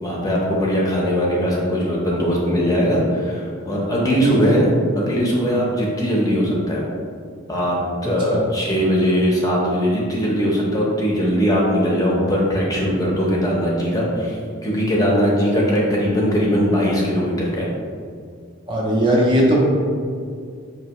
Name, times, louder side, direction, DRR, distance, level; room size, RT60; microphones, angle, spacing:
voice 1, 0.0-4.7 5.0-6.8 7.5-7.8 8.0-17.7, equal, 15° left, -4 dB, 0.6 m, -20 dB
voice 2, 4.2-4.6 8.3-8.4 18.7-19.7, right 1 dB, 25° right, -4 dB, 0.5 m, -18 dB
5.2 x 2.8 x 2.9 m, 2.2 s
head